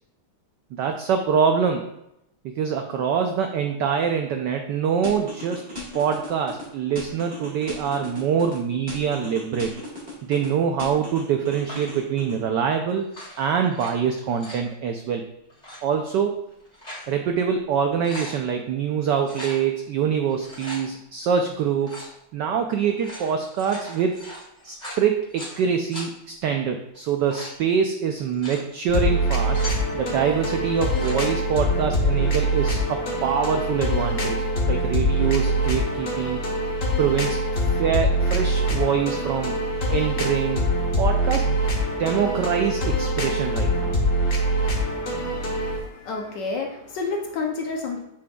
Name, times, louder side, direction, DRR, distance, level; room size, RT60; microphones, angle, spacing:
voice 1, 0.8-1.8 2.6-5.6 5.9-9.7 10.2-13.1 13.4-15.2 15.8-16.4 17.1-22.1 22.3-24.2 24.6-29.6 29.9-36.4 37.0-39.5 39.9-40.6 41.0-41.6 42.0-43.9, right 7 dB, 85° right, 5 dB, 0.9 m, -24 dB
sound 1, 5.0-6.7 7.0-8.6 8.9-10.5 10.8-12.4, left 2 dB, 25° right, 1.6 m, -36 dB
sound 2, 11.6-12.0 13.0-13.9 14.2-14.7 15.5-15.8 16.5-17.1 17.5-17.6 17.8-18.4 19.2-19.6 20.3-20.8 21.8-22.1 22.8-25.6 25.9-26.1 26.9-27.6 28.2-28.6 29.2-29.8 30.7-31.2, equal, 20° left, 2.4 m, -39 dB
sound 3, 28.9-45.8, equal, 45° left, 1.2 m, -24 dB
voice 2, 45.4-48.0, left 4 dB, 65° left, 1 dB, 1.1 m, -30 dB
8.4 x 5.2 x 2.3 m, 0.82 s
omnidirectional pair, 2.4 m